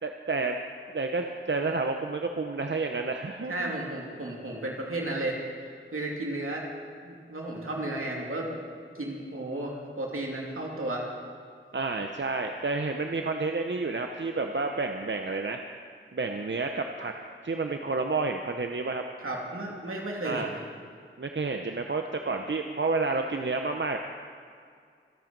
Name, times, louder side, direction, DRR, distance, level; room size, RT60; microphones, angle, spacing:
voice 1, 0.0-0.5 0.9-3.8 11.7-15.6 16.1-17.1 17.4-19.0 20.2-20.5 21.2-24.0, right 3 dB, 60° right, 4 dB, 0.8 m, -30 dB
voice 2, 3.5-5.4 5.9-6.7 7.0-8.6 9.0-11.1 19.2-20.6, right 1 dB, 85° right, -2 dB, 2.8 m, -33 dB
25.5 x 9.0 x 5.3 m, 2.2 s
wide cardioid pair, 50°, 21 cm